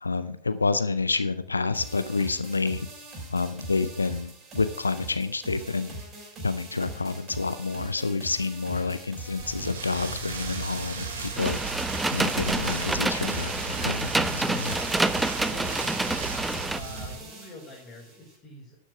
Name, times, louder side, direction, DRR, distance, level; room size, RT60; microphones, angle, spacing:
voice 1, 0.0-2.8 3.3-6.0 6.4-11.6 12.1-14.8, left 4 dB, 80° left, 13 dB, 0.5 m, -28 dB
sound 1, 1.7-18.4, right 2 dB, 25° right, 4.9 m, -42 dB
Rain, 9.4-17.1, right 4 dB, 60° right, 2.6 m, -35 dB
sound 2, 11.4-16.8, right 2 dB, 5° right, 0.5 m, -28 dB
voice 2, 15.4-18.8, left 2 dB, 25° left, -5 dB, 4.0 m, -47 dB
12.0 x 6.4 x 5.9 m, 0.63 s
figure-of-eight pair, 90°, 0 cm